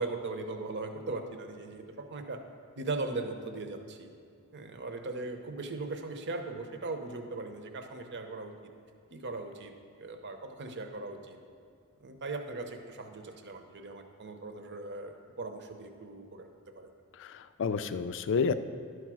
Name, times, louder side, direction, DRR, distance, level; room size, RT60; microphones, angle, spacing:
voice 1, 0.0-2.4 2.7-4.1 4.5-8.5 9.1-9.7 10.0-11.4 12.0-16.5 16.7-16.9, right 3 dB, 50° right, 6 dB, 0.8 m, -39 dB
voice 2, 17.2-18.5, left 5 dB, 55° left, 12 dB, 0.4 m, -30 dB
11.5 x 4.7 x 6.2 m, 2.3 s
head